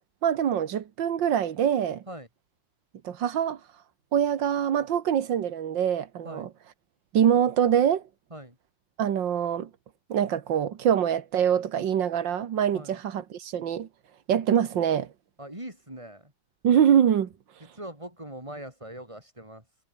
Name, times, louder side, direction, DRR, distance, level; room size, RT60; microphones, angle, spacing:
voice 1, 0.2-2.0 3.0-3.6 4.1-6.5 7.1-8.0 9.0-9.7 10.1-13.9 14.3-15.1 16.6-17.3, right 9 dB, 90° right, 2.1 m, -24 dB
voice 2, 15.4-16.3 17.6-19.8, right 1 dB, 15° right, 5.7 m, -41 dB
omnidirectional pair, 1.9 m